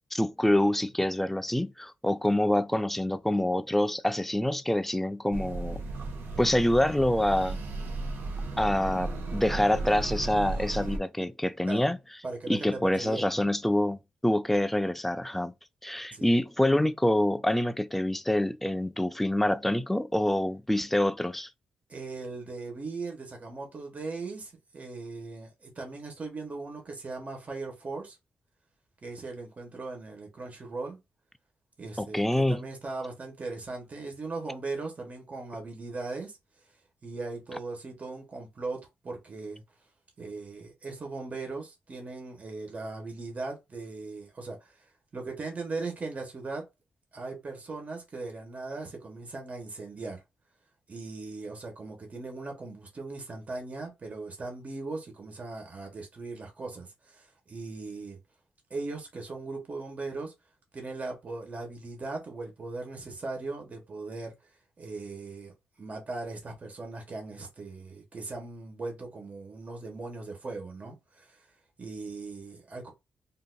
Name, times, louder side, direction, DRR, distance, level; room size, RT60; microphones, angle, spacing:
voice 1, 0.1-5.8 6.4-7.6 8.6-12.0 12.5-14.0 14.2-15.5 15.8-21.5 32.0-32.6, left 1 dB, 5° left, 0.3 m, -26 dB
sound 1, 5.3-11.0, right 3 dB, 85° right, 0.7 m, -35 dB
voice 2, 12.2-13.5 16.1-16.3 21.9-28.2 29.0-31.0 31.8-36.3 37.0-39.6 40.2-44.7 45.1-46.6 47.1-50.2 50.9-58.2 58.7-60.3 60.7-64.3 64.8-65.5 65.8-71.4 71.8-72.9, right 3 dB, 40° right, 1.2 m, -39 dB
3.7 x 2.5 x 2.3 m
cardioid pair, 75°, 4 cm